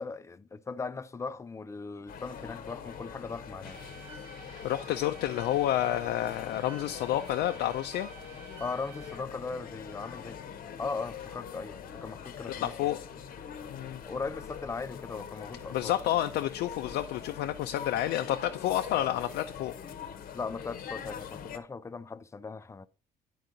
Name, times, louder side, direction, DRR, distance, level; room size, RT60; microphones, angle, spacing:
voice 1, 0.0-3.8 8.6-10.4 10.8-12.7 14.1-15.9 20.3-22.9, left 4 dB, 15° left, 0.4 m, -38 dB
sound 1, 2.1-21.6, left 8 dB, 55° left, 0.8 m, -43 dB
sound 2, 3.6-9.2, right 4 dB, 85° right, 2.0 m, -50 dB
voice 2, 4.6-8.1 12.6-13.0 13.7-14.0 15.7-19.7, left 13 dB, 75° left, 0.5 m, -30 dB
9.1 x 4.7 x 3.8 m
cardioid pair, 110°, 17 cm